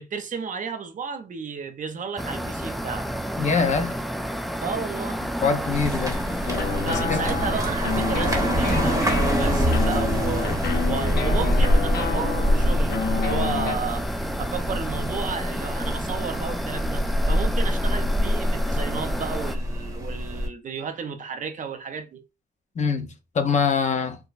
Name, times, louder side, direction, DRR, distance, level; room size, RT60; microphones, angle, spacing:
voice 1, 0.0-3.1 4.6-5.2 6.8-10.6 10.9-22.2, right 6 dB, 55° right, 0.6 m, -33 dB
sound 1, 2.2-19.6, equal, ahead, 0.3 m, -31 dB
voice 2, 3.4-4.0 5.4-6.2 6.9-7.2 22.8-24.2, left 5 dB, 50° left, 0.6 m, -24 dB
sound 2, 5.7-20.5, equal, 20° right, 1.0 m, -25 dB
sound 3, 6.5-13.8, left 5 dB, 85° left, 0.7 m, -29 dB
4.7 x 2.1 x 2.4 m
wide cardioid pair, 120°, 16 cm